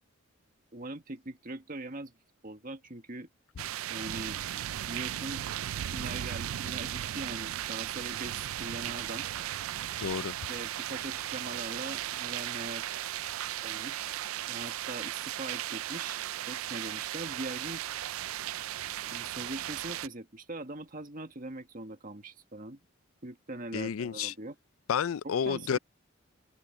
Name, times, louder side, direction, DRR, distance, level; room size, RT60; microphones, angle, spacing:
voice 1, 0.7-2.1 2.4-3.3 3.9-4.4 4.9-9.3 10.5-13.1 13.6-14.2 14.5-17.8 19.1-22.8 23.2-24.5 25.2-25.8, right 2 dB, 40° right, 1.7 m, -42 dB
sound 1, 3.6-20.1, right 12 dB, 80° right, 0.4 m, -36 dB
voice 2, 10.0-10.4 23.7-24.3 24.9-25.8, left 7 dB, 80° left, 0.4 m, -30 dB
head